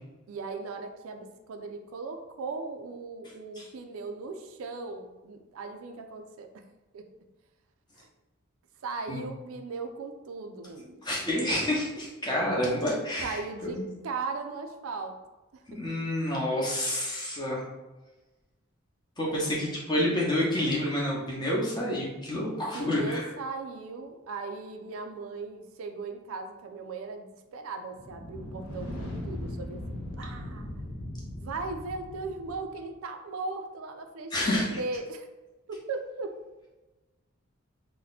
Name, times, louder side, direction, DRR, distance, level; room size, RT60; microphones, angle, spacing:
voice 1, 0.3-6.6 6.9-7.0 8.0-8.1 8.8-11.0 13.2-13.8 14.0-15.1 15.5-15.6 19.3-19.5 22.5-27.2 27.5-29.8 30.2-30.7 31.4-35.3 35.7-36.3, right 3 dB, 75° right, 5 dB, 0.4 m, -38 dB
voice 2, 11.0-13.8 15.7-17.6 19.2-23.3 34.3-34.8, left 1 dB, 20° left, -4 dB, 0.8 m, -29 dB
sound 1, 27.9-32.8, left 1 dB, 85° left, 0.7 m, -39 dB
2.8 x 2.1 x 4.0 m, 1.1 s
head